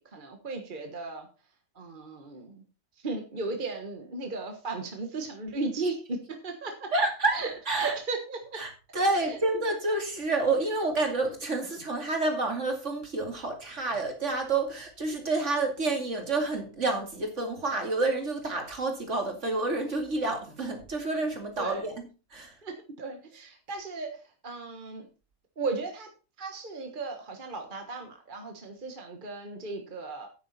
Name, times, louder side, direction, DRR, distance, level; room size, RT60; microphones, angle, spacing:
voice 1, 0.0-1.3 1.7-2.6 3.0-6.9 7.3-8.6 9.1-9.4 13.9-14.0 21.6-21.8 22.6-25.1 25.6-26.1 26.4-30.3, right 3 dB, 40° right, 1.4 m, -36 dB
voice 2, 6.9-8.0 8.5-22.5, right 2 dB, 60° right, 2.7 m, -29 dB
9.7 x 9.2 x 4.2 m
omnidirectional pair, 1.4 m